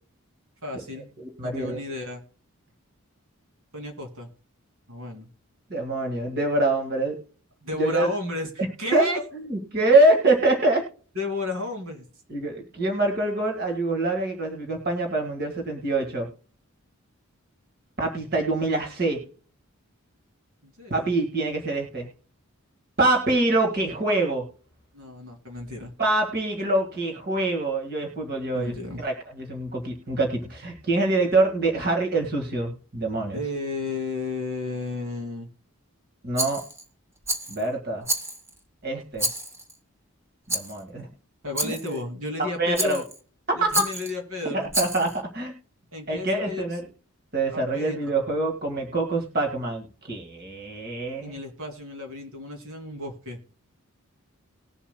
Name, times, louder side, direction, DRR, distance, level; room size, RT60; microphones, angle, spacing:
voice 1, 0.6-1.1 1.4-2.2 3.7-4.3 4.9-5.3 7.6-9.2 11.1-12.0 20.6-21.1 24.9-25.9 28.5-29.0 33.3-35.5 41.4-43.0 43.5-44.7 45.9-46.8 47.5-48.1 51.2-53.4, left 2 dB, 70° right, 3 dB, 2.6 m, -33 dB
voice 2, 1.2-1.8 5.7-7.2 7.8-8.1 8.9-9.2 9.5-10.8 12.3-16.3 18.0-19.2 20.9-22.1 23.0-24.5 26.0-33.4 36.2-36.6 37.5-38.1 38.8-39.3 40.5-41.1 41.6-41.7 42.4-43.0 43.5-43.9 44.5-45.5 46.1-46.8 47.3-51.3, right 2 dB, 45° right, 1 dB, 1.9 m, -25 dB
Rattle, 36.3-36.8 37.2-37.6 38.0-38.6 39.2-39.7 40.5-40.8 41.5-42.0 42.7-43.2 43.7-44.1 44.7-45.2, right 1 dB, 10° right, 0.9 m, -29 dB
20.0 x 7.2 x 2.2 m, 0.43 s
head